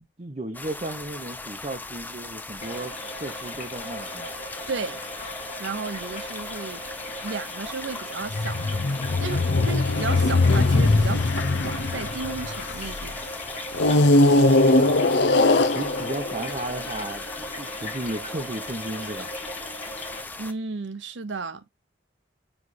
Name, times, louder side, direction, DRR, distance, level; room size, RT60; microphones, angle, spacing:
voice 1, 0.2-4.3 14.2-15.0 15.6-19.3, right 1 dB, 35° right, 0.7 m, -34 dB
sound 1, 0.5-20.5, left 2 dB, 10° left, 0.6 m, -39 dB
sound 2, 2.6-20.2, left 1 dB, 40° left, 1.8 m, -38 dB
voice 2, 4.7-5.0 5.6-6.8 7.2-8.8 9.2-13.2 20.4-21.6, right 4 dB, 85° right, 0.8 m, -34 dB
sound 3, 8.3-13.0 13.7-17.2, left 2 dB, 65° left, 0.6 m, -21 dB
9.6 x 3.2 x 4.1 m
head